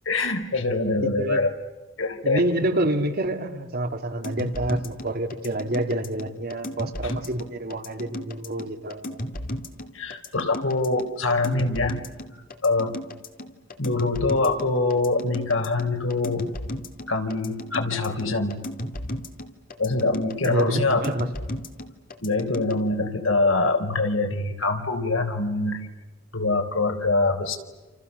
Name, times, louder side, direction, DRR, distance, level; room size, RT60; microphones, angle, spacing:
voice 1, 0.1-1.5 2.0-2.5 7.0-7.1 9.9-12.0 12.6-12.9 13.8-16.4 17.1-18.6 19.8-21.0 22.2-25.9 26.3-27.6, left 3 dB, 80° left, 6 dB, 4.0 m, -24 dB
voice 2, 1.0-1.4 2.2-9.2 20.4-21.3, right 1 dB, 50° right, 5 dB, 2.9 m, -27 dB
sound 1, 4.2-22.7, left 1 dB, 45° left, 2.6 m, -34 dB
29.5 x 28.5 x 6.9 m, 1.2 s
head